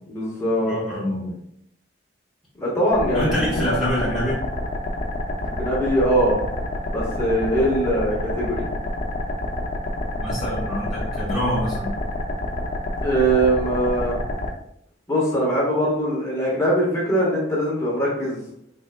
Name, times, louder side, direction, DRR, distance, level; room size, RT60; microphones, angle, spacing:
voice 1, 0.1-0.7 2.6-3.6 5.4-6.4 6.9-8.6 13.0-14.1 15.1-18.4, right 1 dB, 15° left, -5 dB, 1.3 m, -22 dB
voice 2, 0.6-1.3 3.1-4.5 10.2-11.9, equal, ahead, -10 dB, 1.1 m, -25 dB
sound 1, 2.9-14.5, left 1 dB, 40° left, 0.6 m, -28 dB
3.9 x 3.6 x 2.2 m, 0.73 s
head